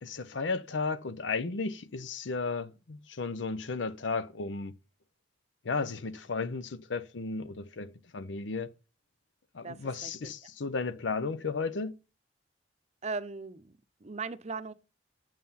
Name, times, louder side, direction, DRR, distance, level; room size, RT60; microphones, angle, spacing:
voice 1, 0.0-4.7 5.6-8.7 9.5-12.0, left 4 dB, 85° left, 0.7 m, -34 dB
voice 2, 9.6-10.1 13.0-14.7, right 4 dB, 35° right, 0.6 m, -38 dB
7.6 x 7.3 x 5.6 m
head